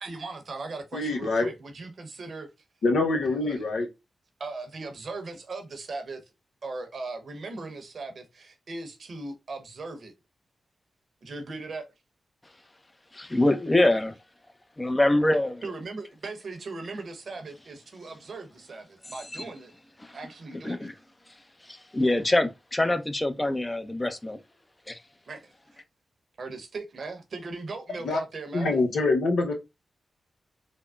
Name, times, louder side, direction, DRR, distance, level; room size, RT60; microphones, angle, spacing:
voice 1, 0.0-2.5 3.4-3.6 4.4-6.2 6.6-10.1 11.2-11.9 15.6-19.7 20.1-20.9 25.2-25.5 26.4-28.8, right 3 dB, 65° right, 0.7 m, -38 dB
voice 2, 0.9-1.5 2.8-3.9 28.0-28.2 28.5-29.5, left 3 dB, 80° left, 0.6 m, -25 dB
voice 3, 13.1-14.1 14.8-15.6 19.3-19.4 20.6-20.9 21.9-24.4 24.9-25.0, left 1 dB, 25° left, 0.5 m, -24 dB
3.5 x 2.0 x 2.2 m
supercardioid pair, 45°, 0 cm